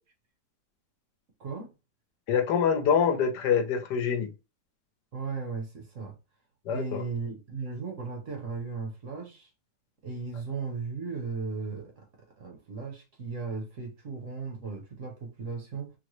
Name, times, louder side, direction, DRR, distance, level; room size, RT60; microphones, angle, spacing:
voice 1, 2.3-4.3 6.7-7.0, left 7 dB, 75° left, 1.3 m, -25 dB
voice 2, 5.1-6.2 6.7-9.5 10.0-12.1 12.4-15.9, right 4 dB, 55° right, 1.1 m, -36 dB
3.9 x 2.1 x 3.0 m
omnidirectional pair, 1.9 m